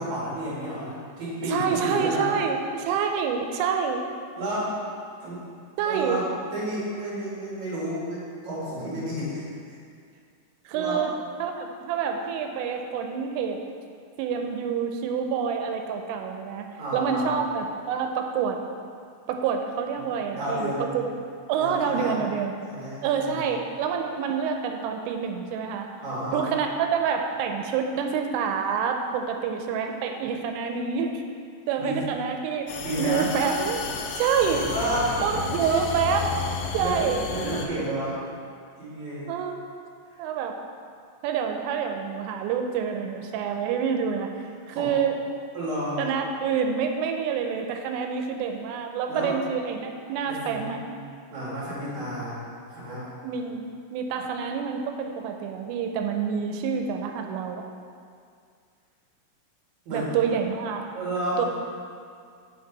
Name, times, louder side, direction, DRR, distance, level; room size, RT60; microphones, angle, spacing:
voice 1, 0.0-2.3 4.4-4.7 5.2-5.5 5.8-6.2 6.5-9.8 10.7-11.0 16.8-17.3 20.0-21.0 21.5-22.2 22.6-23.4 26.0-26.5 31.8-32.0 32.8-33.3 34.7-35.2 36.8-38.2 38.8-39.3 44.7-44.9 45.5-46.0 49.1-49.4 50.2-50.8 51.3-53.1 59.9-60.1 60.9-61.5, right 1 dB, 50° right, -8 dB, 2.5 m, -31 dB
voice 2, 1.5-4.0 5.8-6.2 10.7-11.1 11.4-13.6 14.2-16.7 16.9-18.6 19.3-21.1 21.5-22.5 23.0-25.9 26.3-31.2 31.7-33.8 34.2-34.7 35.2-36.4 36.7-37.2 39.3-39.6 40.2-40.6 41.2-44.3 44.7-45.2 46.0-50.8 53.2-57.6 59.9-60.8 61.4-61.5, right 6 dB, 85° right, 4 dB, 3.1 m, -27 dB
sound 1, 32.7-37.7, left 5 dB, 85° left, 2.6 m, -32 dB
8.0 x 6.8 x 4.0 m, 2.3 s
omnidirectional pair, 5.7 m